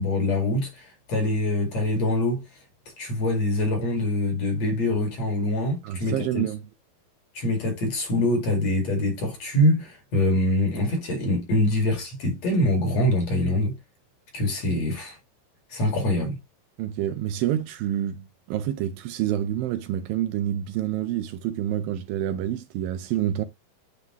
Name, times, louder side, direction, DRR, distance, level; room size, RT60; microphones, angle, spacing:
voice 1, 0.0-2.4 3.0-6.4 7.3-13.7 14.3-15.2 15.7-16.4, left 1 dB, 50° left, 2.8 m, -24 dB
voice 2, 5.8-6.6 16.8-23.4, right 11 dB, 80° right, 2.3 m, -28 dB
9.6 x 3.7 x 2.9 m
omnidirectional pair, 4.4 m